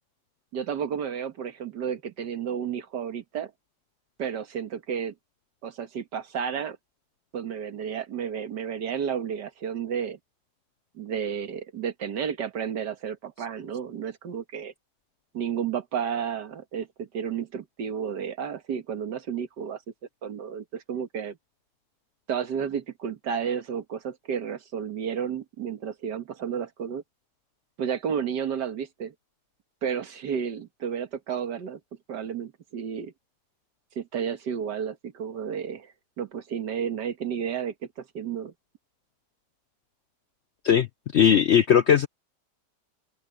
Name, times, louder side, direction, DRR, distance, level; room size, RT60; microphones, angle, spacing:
voice 1, 0.5-3.5 4.2-5.1 5.6-6.8 7.3-10.2 10.9-14.7 15.3-19.8 20.2-21.4 22.3-27.0 27.8-29.1 29.8-31.8 32.1-33.1 34.0-38.5, right 7 dB, 85° right, 2.0 m, -32 dB
voice 2, 41.1-42.1, left 8 dB, 65° left, 0.6 m, -18 dB
open air
omnidirectional pair, 1.8 m